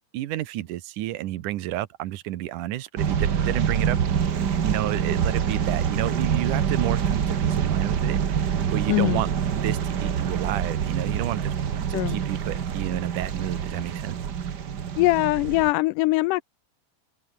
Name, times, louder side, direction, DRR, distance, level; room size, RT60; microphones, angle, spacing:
voice 1, 0.1-4.0 4.3-11.5 11.9-14.2, right 14 dB, 80° right, 2.6 m, -31 dB
sound 1, 3.0-15.7, right 8 dB, 50° right, 1.3 m, -26 dB
voice 2, 8.9-9.2 11.9-12.2 15.0-16.4, left 20 dB, 90° left, 2.2 m, -22 dB
open air
omnidirectional pair, 3.6 m